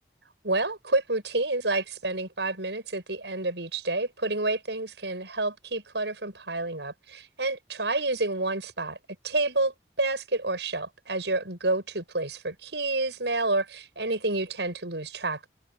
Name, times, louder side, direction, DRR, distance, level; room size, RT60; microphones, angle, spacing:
voice 1, 0.4-9.0 9.2-15.5, right 2 dB, 80° right, 6.8 m, -29 dB
head